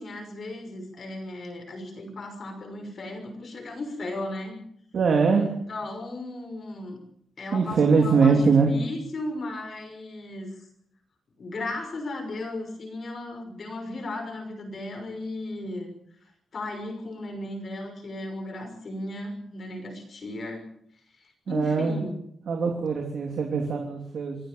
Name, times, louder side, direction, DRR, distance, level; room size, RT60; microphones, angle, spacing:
voice 1, 0.0-4.6 5.4-7.0 7.4-10.7 11.4-15.9 16.5-20.7 21.2-22.2, left 2 dB, 40° left, 5 dB, 6.0 m, -36 dB
voice 2, 4.9-5.5 7.5-8.7 21.5-22.0 22.5-24.4, right 5 dB, 55° right, 2 dB, 3.2 m, -22 dB
26.5 x 17.0 x 7.0 m, 0.69 s
wide cardioid pair, 175°, 0 cm